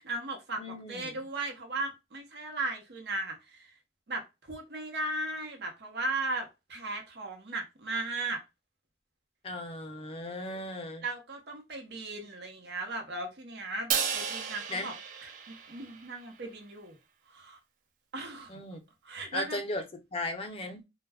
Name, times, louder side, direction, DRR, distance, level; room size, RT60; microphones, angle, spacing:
voice 1, 0.0-3.7 4.1-8.4 10.5-10.6 11.0-14.9 15.2-17.0 17.3-17.6 18.1-18.6 19.0-19.6, right 2 dB, 75° right, 0.8 m, -37 dB
voice 2, 0.6-1.2 9.4-11.0 14.7-14.9 18.5-18.8 19.3-19.8 20.1-20.8, left 2 dB, 35° left, 0.5 m, -36 dB
Crash cymbal, 13.9-16.3, right 7 dB, 50° right, 0.4 m, -34 dB
2.2 x 2.1 x 3.4 m
head